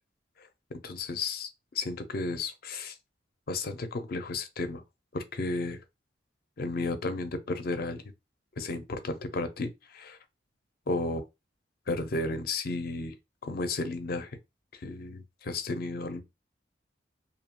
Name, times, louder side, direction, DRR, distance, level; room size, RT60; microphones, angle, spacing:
voice 1, 0.4-1.5 1.7-3.0 3.5-4.8 5.1-5.8 6.6-8.0 8.6-10.2 10.9-11.2 11.9-13.2 13.4-14.4 14.7-16.2, left 3 dB, 55° left, 0.5 m, -33 dB
2.6 x 2.2 x 2.9 m
head